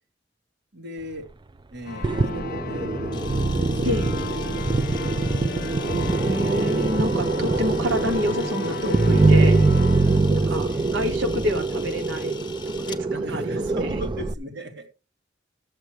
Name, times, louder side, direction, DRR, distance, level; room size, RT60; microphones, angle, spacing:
voice 1, 0.7-1.3 1.7-3.0 3.3-5.3 7.4-7.6 10.2-11.0 13.1-14.9, equal, 60° right, 2 dB, 2.9 m, -39 dB
sound 1, 1.8-11.2, left 5 dB, 50° left, 0.5 m, -35 dB
sound 2, 2.0-14.3, right 3 dB, 25° right, 0.4 m, -23 dB
Camera, 3.1-13.0, left 7 dB, 25° left, 1.3 m, -43 dB
voice 2, 6.1-9.6 10.3-12.4 12.8-14.0, left 1 dB, 80° right, 5 dB, 1.7 m, -28 dB
13.5 x 7.8 x 3.2 m, 0.31 s
head